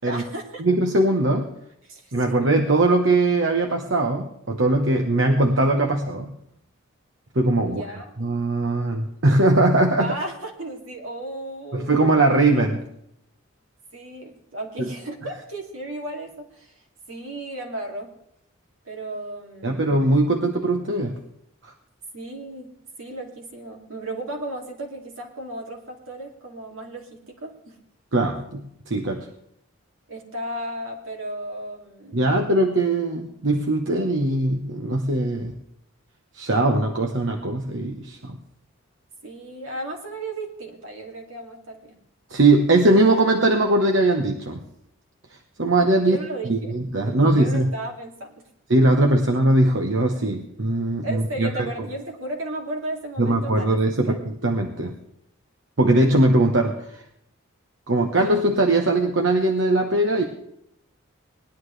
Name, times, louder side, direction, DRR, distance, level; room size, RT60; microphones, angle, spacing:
voice 1, 0.0-0.6 1.8-2.1 7.6-8.1 10.0-12.1 13.9-16.8 17.1-18.1 18.8-19.8 22.1-27.8 30.1-32.2 39.2-42.0 45.9-46.7 47.0-48.4 51.0-53.8 54.0-54.2, right 1 dB, 80° right, 0 dB, 2.6 m, -35 dB
voice 2, 0.6-1.5 2.1-6.3 7.3-7.8 8.2-10.1 11.7-12.8 14.8-14.9 19.6-21.1 21.6-21.7 28.1-29.3 32.1-35.5 36.3-38.4 42.3-44.6 45.6-46.2 46.4-47.7 48.7-51.5 53.2-54.2 54.4-54.9 55.8-57.0 57.9-60.2, right 2 dB, 65° right, 3 dB, 1.1 m, -20 dB
19.5 x 11.0 x 3.3 m, 0.75 s
head